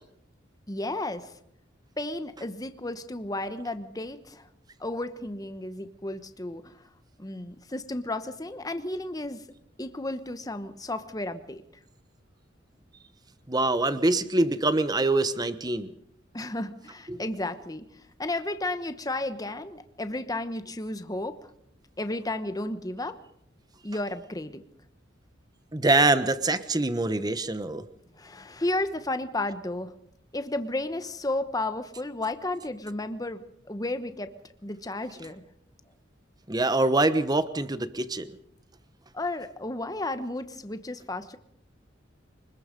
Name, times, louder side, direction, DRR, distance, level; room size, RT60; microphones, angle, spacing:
voice 1, 0.7-1.3 2.0-4.5 4.8-6.8 7.2-9.4 9.8-11.6 16.3-21.5 22.0-23.2 23.8-24.6 28.2-29.9 30.3-34.3 34.6-35.4 39.1-41.4, left 2 dB, 20° left, 10 dB, 1.1 m, -33 dB
voice 2, 13.5-15.9 17.1-17.2 25.7-27.8 36.5-38.3, right 2 dB, 20° right, 12 dB, 1.1 m, -24 dB
24.5 x 21.0 x 5.3 m, 0.74 s
head